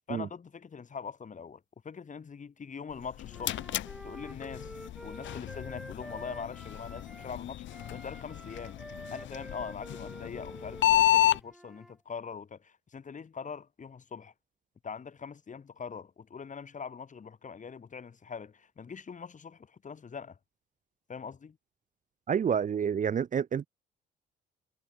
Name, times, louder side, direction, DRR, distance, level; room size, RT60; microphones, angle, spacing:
voice 1, 0.1-3.6 4.0-4.7 5.0-8.8 9.1-14.3 14.8-20.4 21.1-21.6, left 6 dB, 40° left, 2.4 m, -43 dB
sound 1, 2.9-11.4, left 13 dB, 70° left, 1.0 m, -31 dB
Wind instrument woodwind instrument, 3.3-7.3 7.7-11.9, equal, ahead, 2.3 m, -48 dB
voice 2, 22.3-23.7, right 7 dB, 40° right, 0.7 m, -28 dB
cardioid pair, 90°, 20 cm